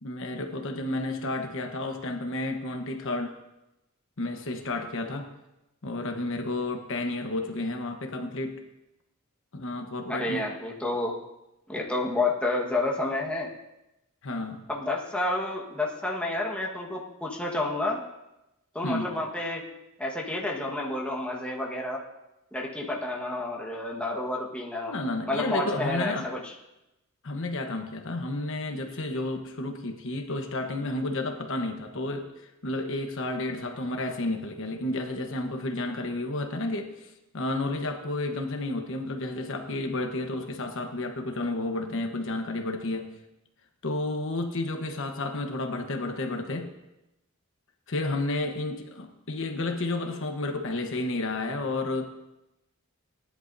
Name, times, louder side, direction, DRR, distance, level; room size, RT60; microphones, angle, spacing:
voice 1, 0.0-3.3 4.2-5.3 5.8-8.6 9.5-10.5 14.2-14.6 18.8-19.1 24.9-26.3 27.2-43.1 43.8-46.7 47.9-52.1, left 2 dB, 60° left, 4 dB, 1.1 m, -31 dB
voice 2, 10.1-11.2 11.7-13.5 14.7-18.0 18.7-19.6 20.0-22.0 22.5-24.9 25.3-26.5, left 2 dB, 5° left, -2 dB, 1.4 m, -30 dB
18.5 x 10.5 x 2.7 m, 0.92 s
head